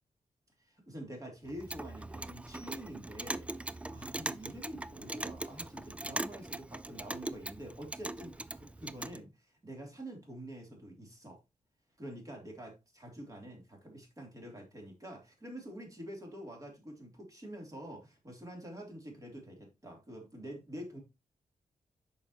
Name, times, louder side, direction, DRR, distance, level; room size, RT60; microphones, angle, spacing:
voice 1, 0.6-11.4 12.0-21.0, right 1 dB, 25° right, 3.1 m, -47 dB
Clock, 1.5-9.2, right 2 dB, 10° right, 0.3 m, -41 dB
8.5 x 6.1 x 2.9 m
wide cardioid pair, 140°, 13 cm